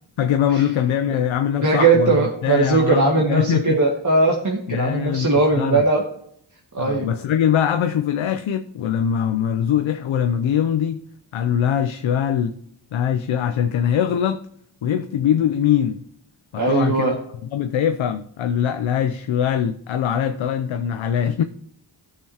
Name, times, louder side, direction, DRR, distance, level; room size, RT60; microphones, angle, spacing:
voice 1, 0.2-3.8 4.7-5.8 6.8-11.0 11.3-12.6 12.9-14.4 14.8-16.0 16.5-17.2 17.5-21.4, left 9 dB, 85° left, 0.7 m, -22 dB
voice 2, 1.6-6.0 6.7-7.1 16.6-17.1, right 3 dB, 40° right, 2.1 m, -19 dB
15.0 x 6.9 x 2.9 m
cardioid pair, 50°, 46 cm